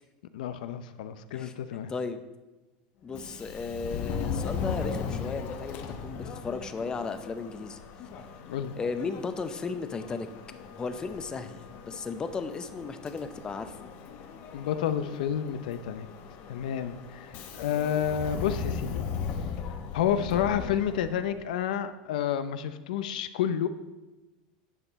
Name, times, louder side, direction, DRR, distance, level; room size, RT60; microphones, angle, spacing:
voice 1, 0.3-1.9 8.4-8.7 14.5-16.1 16.5-17.3 17.6-19.0 19.9-23.7, left 9 dB, 85° left, 12 dB, 0.6 m, -30 dB
voice 2, 1.3-2.2 3.0-7.8 8.8-10.3 10.8-13.7, left 4 dB, 20° left, 10 dB, 0.6 m, -35 dB
Subway metro underground, 3.1-21.4, left 6 dB, 45° left, 0.9 m, -38 dB
9.5 x 5.6 x 4.1 m, 1.1 s
supercardioid pair, 145°, 4 cm